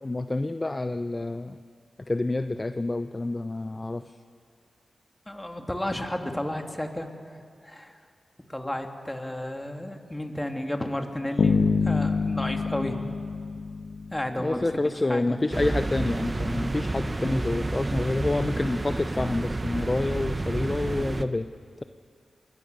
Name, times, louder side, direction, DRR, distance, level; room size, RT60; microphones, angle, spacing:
voice 1, 0.0-1.6 2.1-4.0 14.4-21.5, left 2 dB, 35° left, 10 dB, 0.7 m, -28 dB
voice 2, 5.3-7.1 7.6-7.9 8.5-13.0 14.1-15.4, left 1 dB, 15° left, 4 dB, 2.7 m, -32 dB
sound 1, 11.4-14.4, left 4 dB, 80° left, 1.4 m, -26 dB
sound 2, 15.5-21.2, right 2 dB, 35° right, 1.1 m, -30 dB
27.5 x 21.5 x 6.8 m, 2.3 s
cardioid pair, 45°, 0 cm